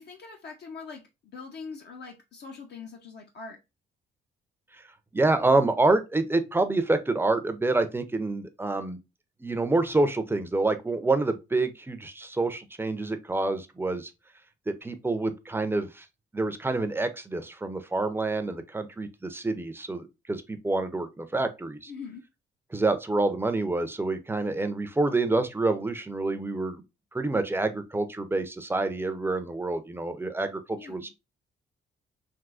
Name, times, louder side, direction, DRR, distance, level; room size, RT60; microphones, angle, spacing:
voice 1, 0.0-3.6 21.9-22.2 30.7-31.1, left 5 dB, 55° left, 0.7 m, -42 dB
voice 2, 5.1-9.0 9.4-14.1 14.7-16.1 16.3-21.9 22.7-26.8 27.1-31.1, right 2 dB, 10° right, 0.5 m, -27 dB
3.5 x 2.6 x 2.4 m
cardioid pair, 90°, 20 cm